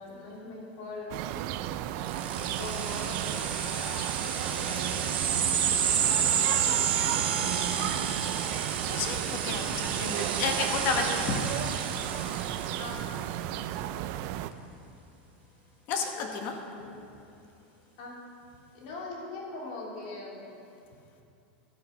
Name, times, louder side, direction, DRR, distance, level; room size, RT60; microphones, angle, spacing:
voice 1, 0.0-1.6 2.4-4.1 4.5-5.3 7.0-8.0 10.2-11.4 12.8-13.0 16.1-16.3 16.6-17.0 18.0-18.2 18.7-20.5, left 2 dB, 55° left, -3 dB, 3.3 m, -42 dB
sound 1, 1.1-14.5, right 12 dB, 45° right, 0.5 m, -34 dB
sound 2, 2.0-13.1, right 8 dB, 85° right, 1.7 m, -30 dB
voice 2, 8.9-11.4 15.9-16.5, left 5 dB, 40° left, 4 dB, 1.3 m, -31 dB
11.5 x 9.8 x 6.0 m, 2.6 s
supercardioid pair, 155°, 6 cm